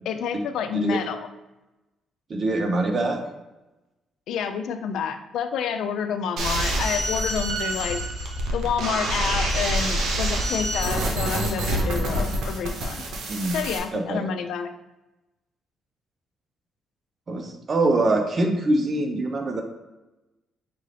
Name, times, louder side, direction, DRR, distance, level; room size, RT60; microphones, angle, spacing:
voice 1, 0.1-1.3 4.3-8.0 8.5-13.0 13.5-14.7, left 7 dB, 80° left, 8 dB, 0.4 m, -29 dB
voice 2, 2.3-3.2 13.3-13.6 13.9-14.3 17.3-19.6, right 2 dB, 45° right, 4 dB, 0.7 m, -24 dB
sound 1, 6.4-13.8, right 1 dB, 80° right, 0.8 m, -26 dB
5.4 x 2.5 x 3.3 m, 1.0 s
cardioid pair, 90°, 0 cm